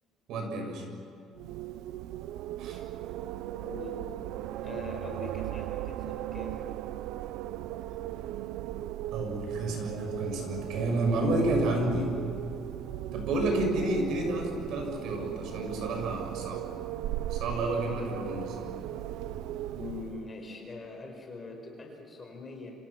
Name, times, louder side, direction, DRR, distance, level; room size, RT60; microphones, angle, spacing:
voice 1, 0.3-0.8 2.6-2.8 9.1-12.1 13.1-16.6 17.3-18.7, right 2 dB, 60° right, 3 dB, 6.8 m, -30 dB
Wind, 1.3-20.4, right 13 dB, 80° right, 0.6 m, -37 dB
voice 2, 3.5-4.0 4.6-6.6 19.7-22.7, left 3 dB, 20° left, 1 dB, 5.0 m, -42 dB
29.5 x 27.5 x 6.1 m, 2.7 s
cardioid pair, 180°, 0 cm